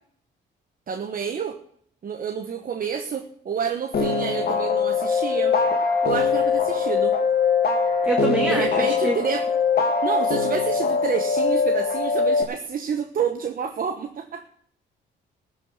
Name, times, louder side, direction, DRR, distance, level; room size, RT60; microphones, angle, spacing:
voice 1, 0.9-1.6 2.0-5.6 6.0-7.2 8.5-9.4 10.0-14.5, right 7 dB, 45° right, 6 dB, 1.1 m, -28 dB
sound 1, 3.9-12.4, left 5 dB, 50° left, 2.4 m, -22 dB
voice 2, 8.1-9.2, right 1 dB, 5° right, 1 dB, 2.0 m, -25 dB
14.0 x 6.2 x 9.3 m, 0.64 s
cardioid pair, 90°, 20 cm